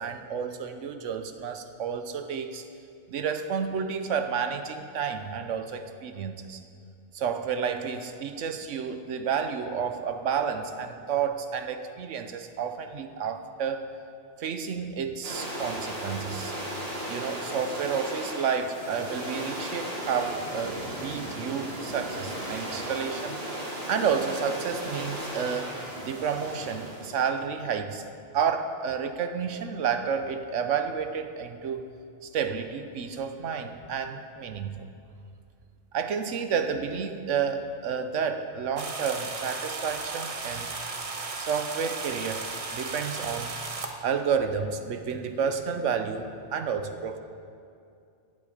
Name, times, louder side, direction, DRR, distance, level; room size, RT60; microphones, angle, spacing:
voice 1, 0.0-2.6 3.1-6.6 7.1-13.9 14.4-16.5 17.1-23.4 23.9-25.8 26.0-28.0 28.3-31.9 32.2-34.9 35.9-40.7 41.4-43.5 44.0-47.2, right 6 dB, 80° right, 8 dB, 1.1 m, -30 dB
sound 1, 15.2-27.3, equal, 55° right, 2.3 m, -36 dB
sound 2, 38.8-43.9, right 3 dB, 35° right, 0.8 m, -35 dB
16.0 x 8.1 x 5.0 m, 2.4 s
omnidirectional pair, 1.2 m